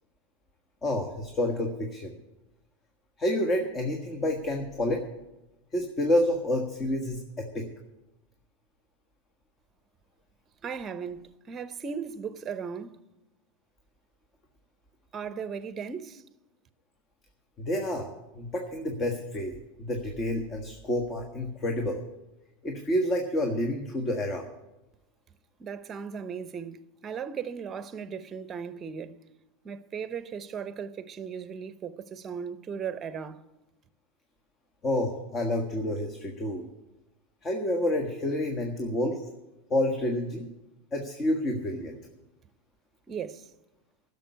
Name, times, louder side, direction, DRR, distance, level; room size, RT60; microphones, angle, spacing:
voice 1, 0.8-2.1 3.2-5.0 5.7-7.7 17.6-18.1 18.3-22.0 22.6-24.4 34.8-36.6 37.4-39.2 39.7-40.5 40.9-41.9, left 1 dB, 30° left, 1.5 m, -29 dB
voice 2, 10.6-13.0 15.1-16.2 25.6-29.2 29.6-33.4 43.1-43.5, right 6 dB, 30° right, 0.8 m, -37 dB
11.0 x 6.9 x 9.5 m
hypercardioid pair, 110°, 0 cm